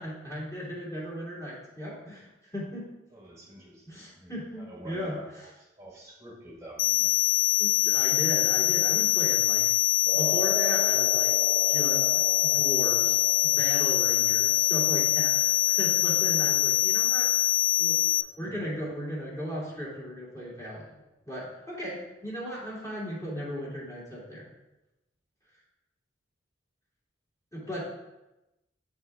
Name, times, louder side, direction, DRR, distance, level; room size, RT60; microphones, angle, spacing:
voice 1, 0.0-2.9 3.9-5.5 7.6-9.7 10.1-11.3 11.7-13.2 13.4-17.3 17.8-21.0 21.3-24.5 27.5-27.8, equal, 15° left, -7 dB, 2.6 m, -36 dB
voice 2, 3.1-4.3 4.7-5.3 5.8-7.1, right 1 dB, 15° right, -3 dB, 1.5 m, -47 dB
sound 1, 6.8-18.2, left 17 dB, 90° left, 0.4 m, -24 dB
sound 2, 10.1-18.4, equal, 40° left, 1.3 m, -40 dB
10.0 x 3.7 x 3.4 m, 0.97 s
head